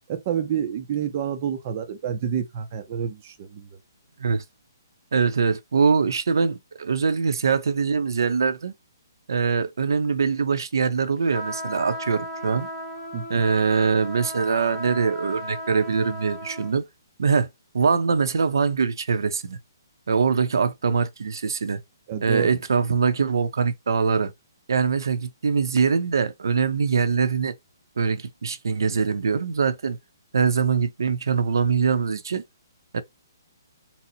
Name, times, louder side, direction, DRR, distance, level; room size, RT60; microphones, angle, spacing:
voice 1, 0.1-3.7 13.1-13.4 22.1-22.5, right 8 dB, 25° right, 0.4 m, -28 dB
voice 2, 5.1-8.7 9.3-12.7 13.3-16.8 17.2-17.5 17.7-19.6 20.1-21.8 22.2-24.3 24.7-27.5 28.0-30.0 30.3-32.4 32.9-33.0, right 5 dB, 75° right, 0.6 m, -23 dB
sound 1, 11.3-16.7, equal, ahead, 0.8 m, -35 dB
4.1 x 2.0 x 2.6 m
hypercardioid pair, 175°, 2 cm